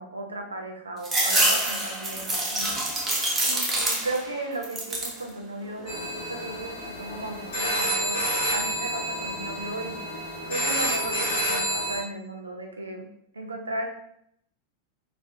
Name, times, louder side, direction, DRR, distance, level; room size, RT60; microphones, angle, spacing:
voice 1, 0.0-2.7 3.4-8.2 8.5-10.0 10.5-13.0 13.3-13.9, right 2 dB, 75° right, 2 dB, 0.4 m, -35 dB
sound 1, 1.0-4.3 4.6-5.2 5.7-6.4, right 1 dB, 15° right, 0.6 m, -26 dB
sound 2, 5.9-12.0, equal, 60° left, 0.7 m, -29 dB
2.3 x 2.1 x 2.6 m, 0.72 s
figure-of-eight pair, 90°, 0 cm